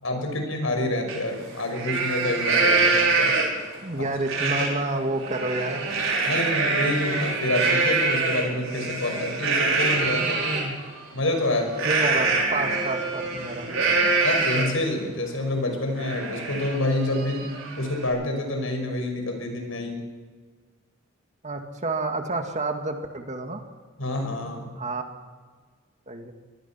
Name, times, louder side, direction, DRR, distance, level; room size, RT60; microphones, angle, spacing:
voice 1, 0.0-3.3 4.6-4.7 6.3-10.4 11.1-11.8 14.2-17.5 17.8-20.0 24.0-24.7, left 1 dB, 85° left, 3 dB, 5.8 m, -27 dB
Livestock farm animals working animals, 1.1-1.2 1.6-3.7 4.2-4.7 5.1-10.6 11.7-14.8 15.3-15.4 15.7-18.1, right 3 dB, 85° right, 6.1 m, -24 dB
voice 2, 3.8-5.9 10.2-10.8 11.8-14.0 21.4-23.6 24.8-25.0 26.1-26.3, right 2 dB, 35° right, 4 dB, 2.2 m, -29 dB
24.5 x 19.5 x 5.9 m, 1.5 s
head